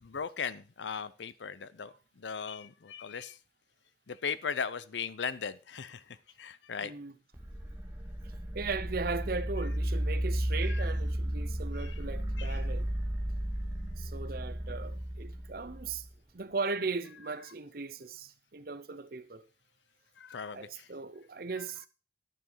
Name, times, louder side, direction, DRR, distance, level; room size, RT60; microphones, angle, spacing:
voice 1, 0.0-3.4 4.1-6.9 10.5-10.9 11.8-11.9 12.4-12.6 20.2-20.9, left 6 dB, 75° left, 0.6 m, -38 dB
voice 2, 6.8-7.1 8.2-12.9 14.0-16.1 16.3-19.4 20.5-21.9, right 4 dB, 50° right, 0.7 m, -38 dB
sound 1, 7.3-16.1, right 1 dB, 15° right, 1.1 m, -34 dB
11.0 x 5.9 x 5.6 m
head